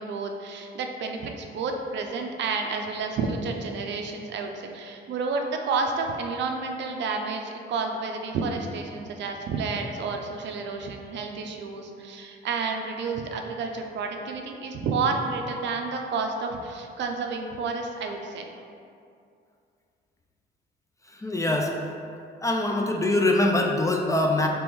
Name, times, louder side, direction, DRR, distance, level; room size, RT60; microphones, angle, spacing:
voice 1, 0.0-18.5, right 4 dB, 65° right, 3 dB, 0.4 m, -30 dB
voice 2, 21.2-21.7 22.4-24.5, left 2 dB, 15° left, 1 dB, 0.3 m, -23 dB
3.0 x 2.9 x 3.5 m, 2.4 s
cardioid pair, 90°, 20 cm